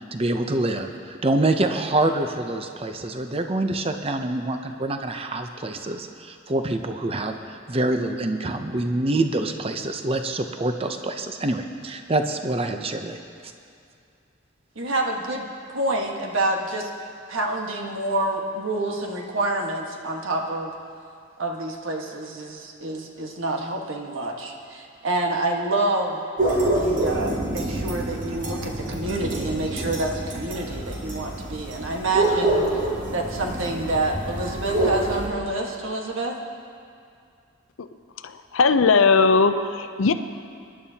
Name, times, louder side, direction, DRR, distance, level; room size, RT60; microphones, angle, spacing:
voice 1, 0.1-13.2, right 2 dB, 30° right, 6 dB, 0.6 m, -26 dB
voice 2, 14.7-16.9 17.3-20.7 21.4-26.2 26.7-32.9 33.1-36.4, right 2 dB, 80° right, 0 dB, 1.5 m, -27 dB
sound 1, 26.4-35.3, right 2 dB, 65° right, 2.6 m, -26 dB
voice 3, 38.2-40.1, left 4 dB, 80° left, 10 dB, 0.6 m, -19 dB
25.5 x 11.0 x 2.9 m, 2.4 s
head